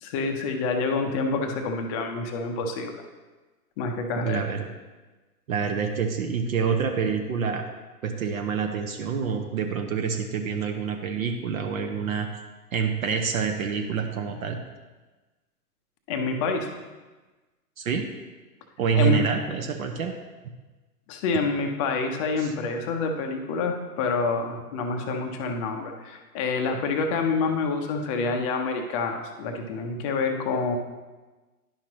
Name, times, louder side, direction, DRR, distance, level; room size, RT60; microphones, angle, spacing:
voice 1, 0.0-2.9 3.8-4.4 16.1-16.7 19.0-19.2 21.1-30.8, left 4 dB, 20° left, 4 dB, 0.5 m, -27 dB
voice 2, 4.2-4.7 5.5-7.6 8.0-12.4 12.7-14.6 17.8-18.1 18.8-20.1 22.4-22.5, right 6 dB, 60° right, 5 dB, 0.8 m, -27 dB
10.5 x 5.8 x 2.9 m, 1.2 s
hypercardioid pair, 120°, 47 cm